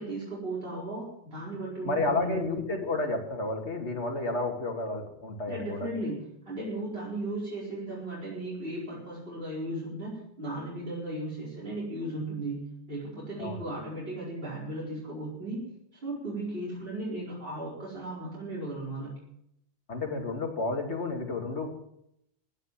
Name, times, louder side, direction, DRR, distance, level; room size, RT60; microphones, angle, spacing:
voice 1, 0.0-2.4 5.5-15.6 16.0-19.1, right 1 dB, 55° right, -6 dB, 4.9 m, -36 dB
voice 2, 1.8-5.9 13.4-13.6 19.9-21.7, left 2 dB, 75° left, 2 dB, 2.7 m, -31 dB
15.5 x 10.0 x 7.5 m, 0.76 s
omnidirectional pair, 1.2 m